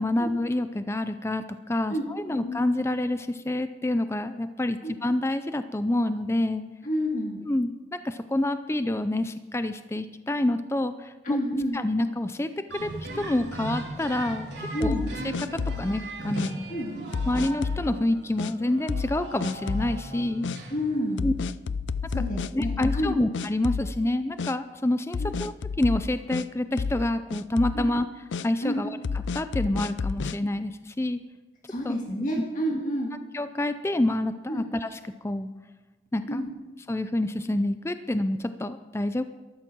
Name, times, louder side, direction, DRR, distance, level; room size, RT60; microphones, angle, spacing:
voice 1, 0.0-6.6 7.4-11.4 11.7-15.0 15.4-16.7 17.3-20.5 21.2-21.3 22.2-22.3 22.5-28.1 28.4-29.0 29.3-31.2 31.8-32.0 33.3-35.5 36.1-36.4 36.9-39.2, left 1 dB, 15° left, 11 dB, 0.5 m, -27 dB
voice 2, 1.9-2.6 4.8-4.9 6.8-7.4 11.2-11.8 14.7-15.1 16.7-16.9 20.7-21.3 22.1-23.1 25.2-25.3 27.7-27.9 28.6-28.8 31.7-33.1 34.5-34.6 36.3-36.5, equal, 45° left, 0 dB, 1.8 m, -29 dB
sound 1, 12.7-21.3, right 2 dB, 75° right, 3.6 m, -38 dB
sound 2, 14.8-15.9 16.4-16.5 17.1-17.9 18.4-18.5 18.9-19.2 19.4-19.9 20.4-20.6 21.2-23.1 23.3-24.1 24.4-24.5 25.1-26.5 26.8-27.1 27.3-27.8 28.3-28.5 29.0-30.4, left 5 dB, 85° left, 0.4 m, -30 dB
13.5 x 12.5 x 6.1 m, 1.2 s
head